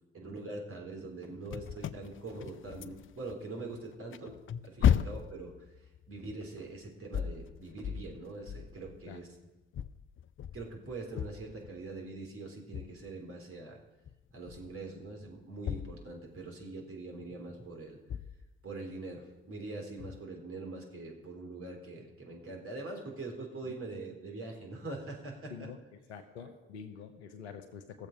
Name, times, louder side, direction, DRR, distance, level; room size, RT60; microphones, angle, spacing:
voice 1, 0.1-4.4 4.6-5.5 6.1-9.3 10.5-13.8 14.3-18.0 18.6-25.7 26.4-26.5, right 2 dB, 45° right, 0 dB, 3.6 m, -43 dB
sound 1, 1.5-3.3 3.7-9.2 9.7-12.0 12.7-13.1 14.1-14.9 15.2-16.6 17.5-17.6 18.1-18.6 20.0-20.2, left 9 dB, 40° left, 0.5 m, -36 dB
voice 2, 26.1-28.1, left 7 dB, 85° left, 8 dB, 0.8 m, -46 dB
16.5 x 7.3 x 5.3 m, 1.1 s
figure-of-eight pair, 40°, 32 cm